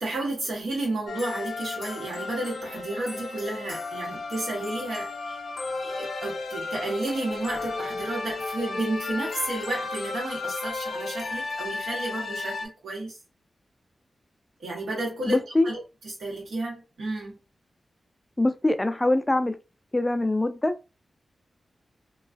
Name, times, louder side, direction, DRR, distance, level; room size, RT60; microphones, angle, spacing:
voice 1, 0.0-5.4 5.8-13.2 14.6-17.4, right 2 dB, 90° right, 1.1 m, -32 dB
sound 1, 1.1-12.7, left 3 dB, 75° left, 0.5 m, -34 dB
voice 2, 15.3-15.7 18.4-19.6 19.9-20.9, left 2 dB, 20° left, 0.3 m, -23 dB
2.3 x 2.2 x 2.4 m
cardioid pair, 70°, 0 cm